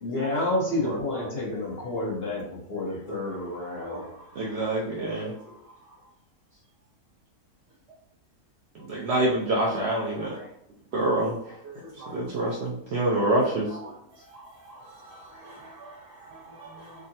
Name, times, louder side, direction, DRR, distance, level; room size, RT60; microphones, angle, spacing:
voice 1, 0.0-2.4 2.7-4.1, left 2 dB, 45° left, -7 dB, 1.0 m, -29 dB
voice 2, 3.6-4.1 4.9-5.5 9.6-10.5 11.0-11.1 11.6-12.5 13.1-13.3 13.7-13.9 14.3-16.9, right 2 dB, 55° right, -5 dB, 1.5 m, -43 dB
voice 3, 4.4-5.3 8.8-10.4 10.9-11.4 12.1-13.7, right 1 dB, 75° right, -3 dB, 0.6 m, -26 dB
3.5 x 2.1 x 2.7 m, 0.75 s
omnidirectional pair, 1.6 m